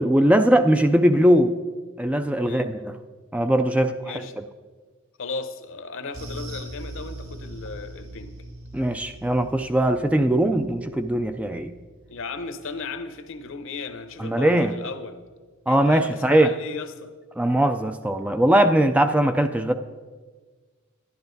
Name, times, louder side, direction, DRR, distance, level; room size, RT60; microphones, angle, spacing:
voice 1, 0.0-1.6 2.0-2.9 3.3-4.1 8.7-11.7 14.2-14.7 15.7-16.5 17.4-19.7, right 1 dB, 5° right, 8 dB, 0.3 m, -20 dB
voice 2, 4.0-4.3 5.2-8.3 12.1-15.2 15.7-17.1, left 4 dB, 65° left, 9 dB, 0.8 m, -36 dB
sound 1, 6.1-14.8 15.1-15.3 15.7-15.8, right 1 dB, 70° right, 2.2 m, -42 dB
11.0 x 11.0 x 3.9 m, 1.4 s
head